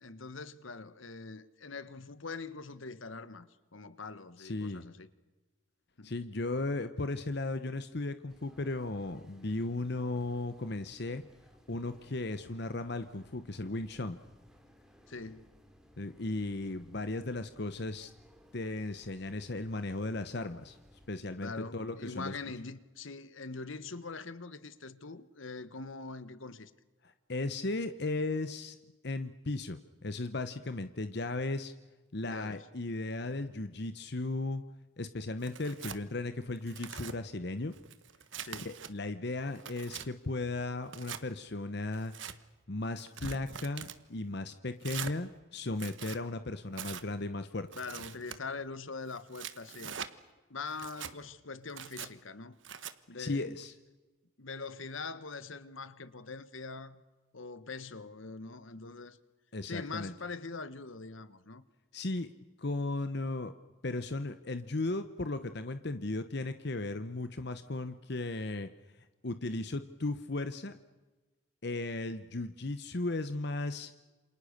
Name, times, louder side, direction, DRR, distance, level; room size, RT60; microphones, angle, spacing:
voice 1, 0.0-5.1 6.0-6.1 15.1-15.5 21.4-26.7 32.2-32.7 38.4-38.7 47.7-49.9 50.5-52.5 53.1-53.5 54.4-57.0 57.3-59.2 59.6-61.6, left 4 dB, 75° left, 1.3 m, -43 dB
voice 2, 4.4-4.8 6.0-11.2 11.7-14.2 16.0-18.1 18.5-20.8 21.1-22.3 27.0-28.8 29.0-31.7 32.1-34.6 35.0-37.7 38.6-42.1 42.7-47.7 53.2-53.7 59.5-60.1 61.9-62.3 62.6-63.5 63.8-68.7 69.2-70.8 71.6-73.9, left 2 dB, 55° left, 0.9 m, -36 dB
sound 1, 8.3-21.1, equal, 5° right, 2.9 m, -61 dB
Tearing, 35.4-36.0 36.6-37.2 37.7-38.9 39.4-40.1 40.8-41.2 41.9-42.4 43.0-44.0 44.8-45.2 45.7-46.2 46.7-47.0 47.7-48.4 49.1-50.1 50.7-51.1 51.7-52.1 52.6-52.9, right 8 dB, 65° right, 1.3 m, -43 dB
28.5 x 27.0 x 6.6 m
head